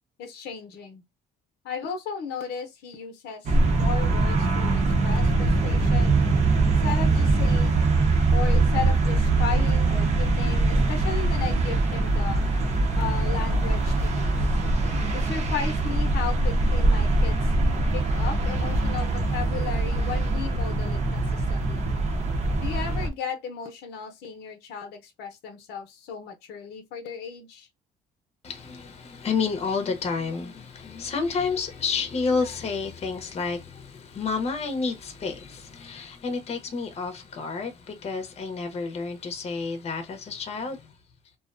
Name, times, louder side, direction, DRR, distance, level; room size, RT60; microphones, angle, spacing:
voice 1, 0.2-1.0 1.6-6.2 6.6-7.9 8.3-12.4 13.0-14.5 15.1-17.4 17.9-21.9 22.6-27.7, left 6 dB, 80° left, 0.7 m, -35 dB
sound 1, 3.5-23.1, right 2 dB, 40° right, 0.7 m, -23 dB
voice 2, 28.4-40.9, left 4 dB, 40° left, 0.7 m, -30 dB
2.4 x 2.2 x 2.5 m
cardioid pair, 110°, 17 cm